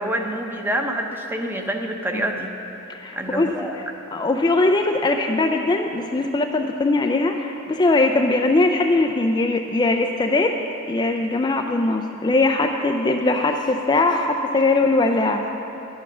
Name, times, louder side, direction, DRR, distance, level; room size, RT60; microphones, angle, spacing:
voice 1, 0.0-2.5 3.2-3.8, right 1 dB, 10° right, 3 dB, 0.8 m, -26 dB
voice 2, 2.9-3.5 4.1-10.6 10.9-15.4, left 2 dB, 20° left, 3 dB, 0.4 m, -20 dB
11.0 x 9.2 x 6.2 m, 3.0 s
head